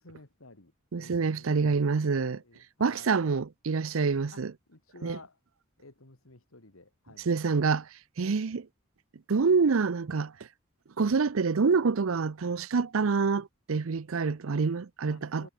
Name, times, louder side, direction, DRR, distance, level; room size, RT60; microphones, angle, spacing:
voice 1, 0.0-3.2 4.3-4.4 4.7-5.4 5.8-7.3 8.2-8.4 15.1-15.5, left 2 dB, 85° left, 2.7 m, -53 dB
voice 2, 0.9-2.4 2.8-4.5 5.0-5.2 7.3-7.9 8.2-8.6 9.3-10.3 11.0-15.5, right 4 dB, 80° right, 0.6 m, -26 dB
head